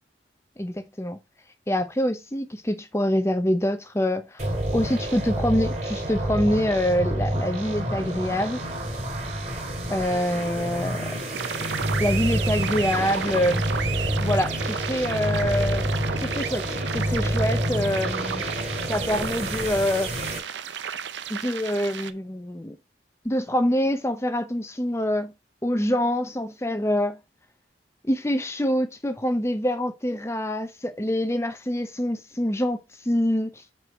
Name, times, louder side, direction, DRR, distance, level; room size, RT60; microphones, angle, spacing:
voice 1, 0.6-1.2 1.7-8.6 9.9-11.2 12.0-13.6 14.2-15.9 16.2-16.6 16.9-18.4 18.9-20.1 21.3-22.8 23.2-25.3 25.6-27.2 28.0-33.5, equal, 15° left, 0.7 m, -25 dB
sound 1, 4.4-20.4, equal, 40° right, 2.3 m, -28 dB
sound 2, 11.3-22.1, right 7 dB, 85° right, 0.6 m, -33 dB
4.8 x 4.7 x 6.1 m
head